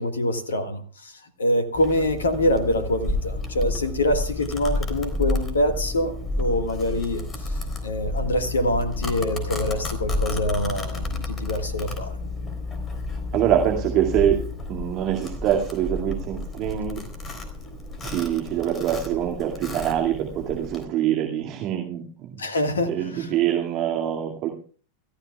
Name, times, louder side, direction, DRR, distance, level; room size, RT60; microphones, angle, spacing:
voice 1, 0.0-7.5 7.8-12.1 22.4-23.3, left 1 dB, 70° left, 9 dB, 1.7 m, -25 dB
Domestic sounds home sounds, 1.7-20.8, left 2 dB, 20° left, 3.8 m, -31 dB
voice 2, 13.3-14.4 14.7-17.0 18.0-22.4 22.9-24.5, right 11 dB, 40° right, 1 dB, 2.3 m, -24 dB
28.5 x 15.0 x 2.3 m, 0.43 s
figure-of-eight pair, 90°, 0 cm